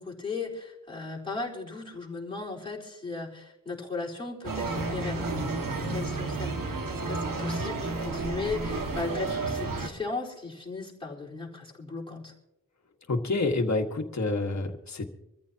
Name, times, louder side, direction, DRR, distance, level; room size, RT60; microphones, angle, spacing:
voice 1, 0.0-5.3 5.9-12.3, left 3 dB, 15° left, -3 dB, 4.2 m, -36 dB
sound 1, 4.4-9.9, right 3 dB, 75° right, 2.0 m, -31 dB
voice 2, 13.1-15.2, left 2 dB, 55° left, 4 dB, 1.8 m, -28 dB
25.0 x 14.0 x 2.9 m, 0.90 s
wide cardioid pair, 105°, 33 cm